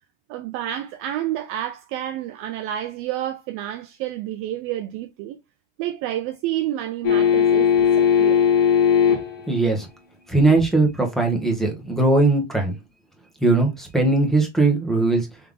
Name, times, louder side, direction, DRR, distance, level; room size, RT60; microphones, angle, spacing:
voice 1, 0.3-5.4 5.8-8.5 10.5-10.6, right 12 dB, 40° right, 0.5 m, -29 dB
sound 1, 7.0-9.4 12.0-12.1, left 8 dB, 50° left, 1.5 m, -17 dB
voice 2, 9.5-9.9 10.3-12.8 13.4-15.3, right 3 dB, ahead, 1.1 m, -19 dB
3.6 x 3.3 x 3.6 m
supercardioid pair, 145°, 36 cm